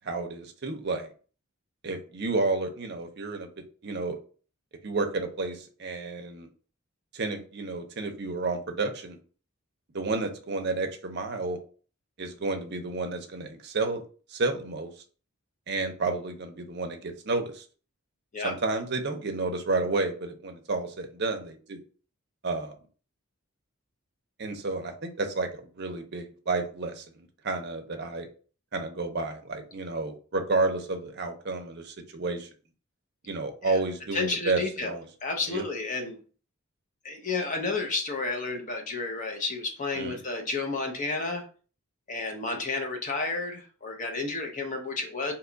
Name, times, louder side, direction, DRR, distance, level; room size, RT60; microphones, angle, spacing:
voice 1, 0.0-1.1 1.8-3.5 3.8-4.2 4.8-6.5 7.1-9.2 9.9-11.6 12.2-14.0 14.3-14.9 15.7-17.6 18.4-21.8 22.4-22.7 24.4-27.0 27.4-28.3 28.7-32.5 33.2-35.1 35.5-35.6 39.9-40.2, right 3 dB, 50° right, 5 dB, 0.5 m, -31 dB
voice 2, 34.1-36.2 37.0-41.4 42.1-45.3, left 3 dB, 35° left, 3 dB, 0.6 m, -31 dB
2.9 x 2.3 x 3.7 m, 0.40 s
head